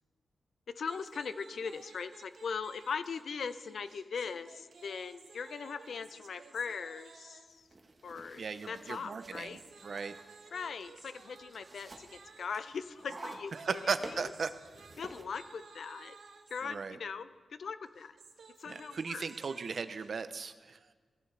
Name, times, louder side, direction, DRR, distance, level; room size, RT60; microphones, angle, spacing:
voice 1, 0.7-7.6 8.0-9.6 10.5-13.8 14.2-14.3 15.0-16.2 16.5-18.1 18.6-19.3, left 5 dB, 70° left, 12 dB, 0.6 m, -40 dB
sound 1, 0.8-7.6 8.5-16.6 17.9-20.1, right 5 dB, 80° right, 1.3 m, -56 dB
sound 2, 7.5-15.2, right 2 dB, 30° right, 1.3 m, -51 dB
voice 2, 8.4-10.2 13.5-14.5 16.6-17.0 18.7-20.8, right 5 dB, 55° right, 11 dB, 0.7 m, -37 dB
18.0 x 14.5 x 3.4 m, 1.4 s
wide cardioid pair, 140°, 0 cm